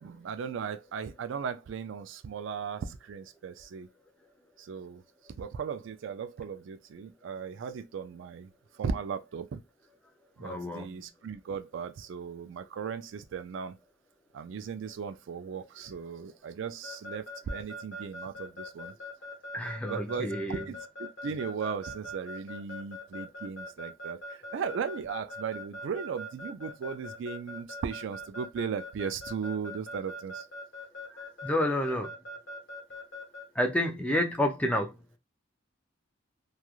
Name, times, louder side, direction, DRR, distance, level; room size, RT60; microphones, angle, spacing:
voice 1, 0.0-3.9 4.6-5.0 5.4-8.5 8.8-9.6 10.4-13.8 14.3-18.9 19.9-30.5, right 6 dB, 65° right, 0.3 m, -37 dB
voice 2, 10.4-11.0 19.5-20.7 31.4-32.1 33.6-35.2, left 1 dB, 5° left, 0.4 m, -29 dB
Keyboard (musical) / Alarm, 16.8-33.4, left 1 dB, 70° left, 1.1 m, -41 dB
3.0 x 2.3 x 2.3 m
head